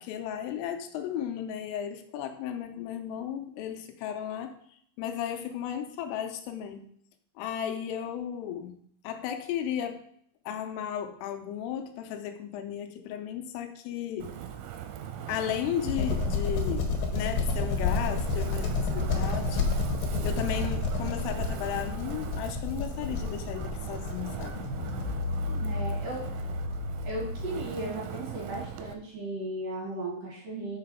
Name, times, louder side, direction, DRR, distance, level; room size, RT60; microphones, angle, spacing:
voice 1, 0.0-4.5 5.0-6.9 7.4-8.8 9.0-10.0 10.5-14.3 15.3-19.6 20.2-24.7, left 9 dB, 85° left, 6 dB, 3.2 m, -35 dB
Wind, 14.2-28.9, right 9 dB, 85° right, 3.2 m, -40 dB
sound 1, 15.9-27.6, left 3 dB, 65° left, 2.3 m, -30 dB
voice 2, 25.5-26.3 27.0-30.8, right 1 dB, 60° right, -3 dB, 2.8 m, -36 dB
6.7 x 5.8 x 5.5 m, 0.65 s
omnidirectional pair, 5.9 m